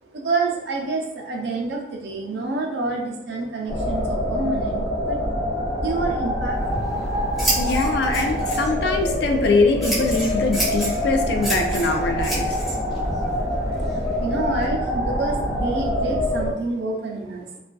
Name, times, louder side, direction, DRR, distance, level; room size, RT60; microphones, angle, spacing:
voice 1, 0.0-5.2 5.5-7.0 7.3-7.4 13.7-17.6, right 3 dB, 75° right, 0 dB, 0.5 m, -28 dB
Synth Wind, 3.7-16.5, equal, 25° left, 1.0 m, -25 dB
Scissors, 6.5-14.6, right 1 dB, ahead, 0.6 m, -31 dB
voice 2, 7.6-12.5, left 3 dB, 70° left, 4 dB, 0.4 m, -22 dB
2.4 x 2.3 x 2.2 m, 0.93 s
head